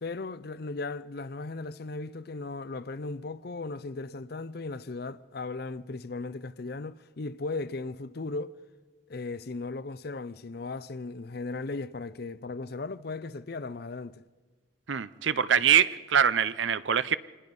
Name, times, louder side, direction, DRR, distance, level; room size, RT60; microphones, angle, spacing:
voice 1, 0.0-8.6 9.1-14.2 15.5-15.8, left 3 dB, 50° left, 0.5 m, -37 dB
voice 2, 14.9-17.2, right 8 dB, 65° right, 0.6 m, -24 dB
26.5 x 20.0 x 5.4 m
head